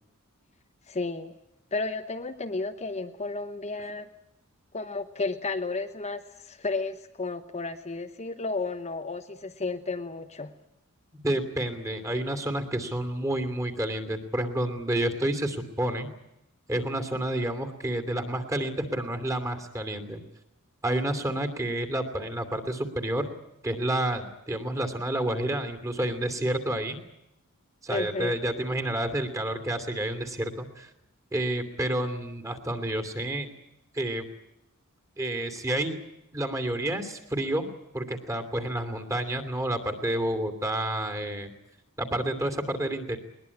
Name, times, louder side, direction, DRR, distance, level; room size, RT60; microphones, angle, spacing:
voice 1, 0.9-1.3 1.7-4.1 4.7-10.5 27.9-28.4, left 3 dB, 30° left, 6 dB, 1.0 m, -32 dB
voice 2, 11.2-16.1 16.7-20.2 20.8-23.3 23.6-27.0 27.8-30.9 31.3-33.5 33.9-34.3 35.2-36.0 36.3-37.7 37.9-41.5 42.0-43.2, right 1 dB, 15° right, 8 dB, 2.8 m, -29 dB
21.0 x 20.5 x 9.7 m, 0.87 s
head